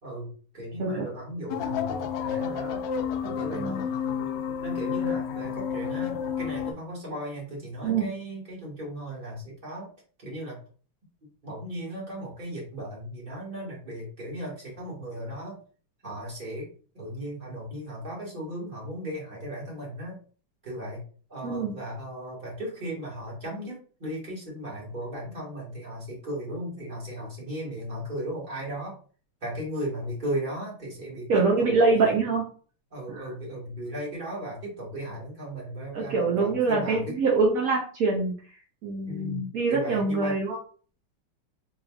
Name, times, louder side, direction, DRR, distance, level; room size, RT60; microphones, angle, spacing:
voice 1, 0.0-2.8 3.2-3.9 4.6-9.9 10.2-10.5 11.4-15.6 16.0-16.7 16.9-20.2 20.6-21.0 21.3-28.9 29.4-32.1 32.9-37.2 39.1-40.4, equal, 25° right, -4 dB, 1.6 m, -36 dB
sound 1, 1.5-6.7, left 7 dB, 85° left, 1.5 m, -30 dB
voice 2, 3.2-3.8 7.8-8.0 21.4-21.7 31.3-32.4 33.1-33.3 35.9-38.3 38.8-40.6, right 3 dB, 65° right, -2 dB, 0.8 m, -24 dB
4.3 x 3.3 x 2.4 m, 0.42 s
omnidirectional pair, 2.4 m